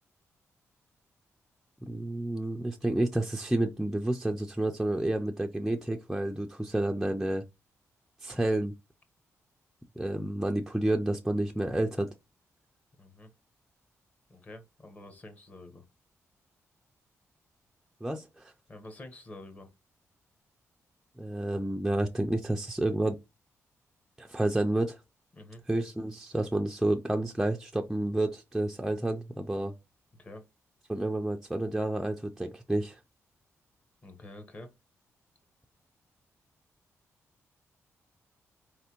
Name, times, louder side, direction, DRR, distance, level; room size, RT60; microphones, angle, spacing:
voice 1, 1.8-7.4 8.2-8.7 10.0-12.1 18.0-18.5 21.2-23.2 24.2-25.0 25.7-29.7 30.9-33.0, right 1 dB, 5° right, 0.4 m, -30 dB
voice 2, 13.0-13.3 14.3-15.8 18.7-19.7 25.3-25.6 30.1-30.4 34.0-34.7, left 2 dB, 30° left, 1.0 m, -47 dB
4.2 x 3.3 x 2.9 m
cardioid pair, 115°, 5 cm